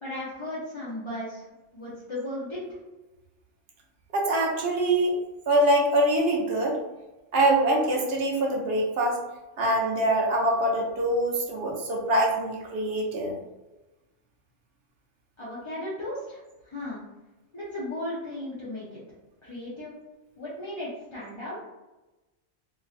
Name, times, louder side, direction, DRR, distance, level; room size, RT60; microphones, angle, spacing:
voice 1, 0.0-1.4 1.7-2.6 15.4-16.4 16.7-17.0 17.5-18.9 19.4-19.9 20.4-21.6, left 1 dB, 30° left, -9 dB, 0.5 m, -35 dB
voice 2, 4.1-5.1 5.5-6.8 7.3-9.2 9.6-13.3, right 1 dB, 60° right, -1 dB, 0.7 m, -24 dB
3.1 x 2.6 x 2.4 m, 1.1 s
omnidirectional pair, 1.3 m